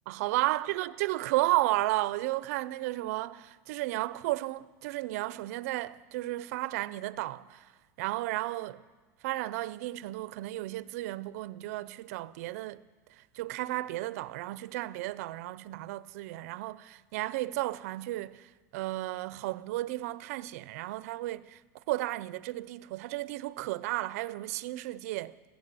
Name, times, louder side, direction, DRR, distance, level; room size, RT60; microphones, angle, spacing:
voice 1, 0.1-7.7 8.0-8.8 9.2-12.8 13.3-21.6 21.9-25.5, right 17 dB, 60° right, 0.5 m, -33 dB
21.0 x 8.3 x 7.6 m
supercardioid pair, 175°, 9 cm